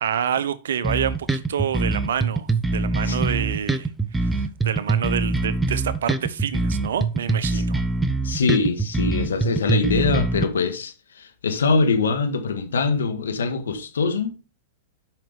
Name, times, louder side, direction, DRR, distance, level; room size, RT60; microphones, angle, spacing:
voice 1, 0.0-3.9 4.2-7.8, right 8 dB, 75° right, 0.9 m, -27 dB
sound 1, 0.8-10.4, right 3 dB, 10° right, 0.9 m, -24 dB
voice 2, 8.2-14.3, left 4 dB, 85° left, 1.7 m, -23 dB
7.7 x 5.9 x 5.1 m
hypercardioid pair, 110°, 0 cm